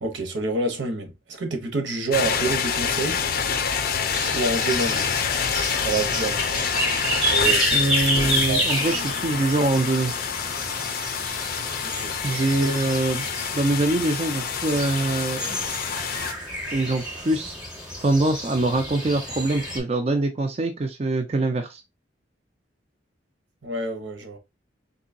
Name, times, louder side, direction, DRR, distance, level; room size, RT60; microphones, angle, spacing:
voice 1, 0.0-3.2 4.3-5.1 5.8-6.7 7.2-7.8 8.5-8.7 11.8-12.1 23.6-24.4, right 2 dB, 80° right, 0.9 m, -28 dB
sound 1, 2.1-16.3, left 6 dB, 50° left, 0.5 m, -27 dB
sound 2, 4.1-19.8, equal, 5° right, 0.8 m, -30 dB
voice 2, 7.7-10.1 12.2-13.2 13.5-15.6 16.7-17.6 18.0-21.8, right 2 dB, 35° right, 0.4 m, -24 dB
3.8 x 2.7 x 2.5 m
head